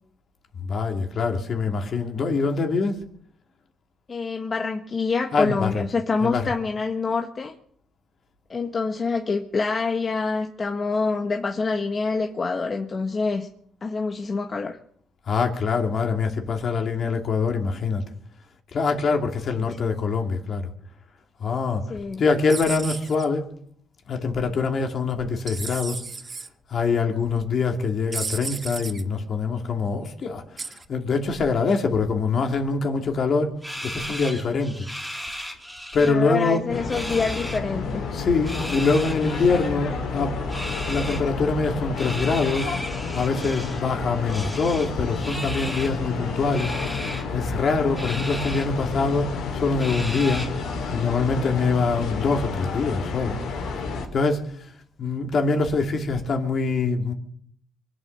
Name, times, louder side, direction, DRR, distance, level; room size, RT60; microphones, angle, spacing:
voice 1, 0.6-3.0 5.3-5.9 6.2-6.5 15.3-18.0 18.7-20.6 21.4-21.8 22.2-23.4 24.1-26.0 26.7-30.4 30.9-33.5 33.8-34.8 35.9-36.6 38.1-40.4 40.9-42.7 43.1-46.7 47.3-50.4 50.9-53.4 54.1-54.4 55.0-57.1, left 4 dB, 55° left, 2.8 m, -24 dB
voice 2, 4.1-7.5 8.5-13.5 13.8-14.8 19.5-19.7 21.9-22.2 36.0-38.0, left 4 dB, 35° left, 1.4 m, -26 dB
sound 1, 22.5-23.2 25.5-26.5 28.1-29.0 30.6-30.8, right 4 dB, 35° right, 1.1 m, -33 dB
sound 2, 33.6-36.1 36.4-37.6 38.3-39.7 40.5-41.2 42.0-43.8 44.3-46.0 46.5-47.2 48.0-48.7 49.1-49.2 49.8-50.7, equal, ahead, 3.5 m, -35 dB
sound 3, 36.7-54.1, left 4 dB, 80° left, 4.1 m, -30 dB
24.0 x 8.7 x 6.7 m
cardioid pair, 90°, 0 cm